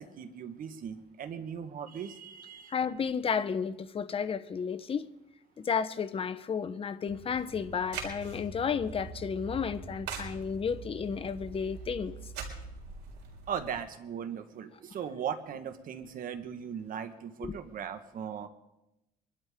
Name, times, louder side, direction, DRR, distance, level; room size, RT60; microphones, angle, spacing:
voice 1, 0.0-2.7 13.5-18.5, right 8 dB, 55° right, 1.6 m, -38 dB
voice 2, 2.7-5.1 5.6-12.1 17.4-17.5, left 6 dB, 35° left, 0.9 m, -32 dB
sound 1, 7.1-13.8, right 4 dB, 85° right, 4.1 m, -43 dB
24.0 x 12.0 x 3.7 m
cardioid pair, 110°, 17 cm